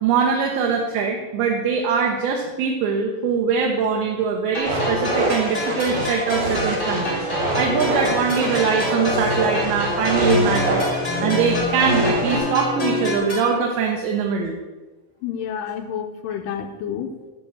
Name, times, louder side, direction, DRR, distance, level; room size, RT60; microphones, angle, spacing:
voice 1, 0.0-7.3 7.6-10.9 11.2-14.6, right 6 dB, 80° right, 0 dB, 2.7 m, -22 dB
sound 1, 4.5-13.5, left 1 dB, 20° left, 2.1 m, -29 dB
sound 2, 4.6-12.4, right 1 dB, 60° right, 2.2 m, -24 dB
sound 3, 6.9-13.2, left 4 dB, 55° left, 1.0 m, -32 dB
voice 2, 15.2-17.3, left 8 dB, 85° left, 5 dB, 1.9 m, -29 dB
10.0 x 3.7 x 6.8 m, 1.2 s
omnidirectional pair, 4.5 m